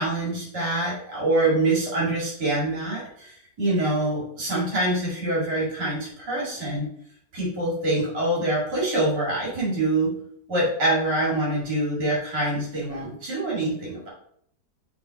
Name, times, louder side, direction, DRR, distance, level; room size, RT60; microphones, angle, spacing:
voice 1, 0.0-6.9 7.3-10.1 10.5-14.1, right 1 dB, 75° right, -5 dB, 2.7 m, -25 dB
6.0 x 3.5 x 4.7 m, 0.66 s
omnidirectional pair, 1.8 m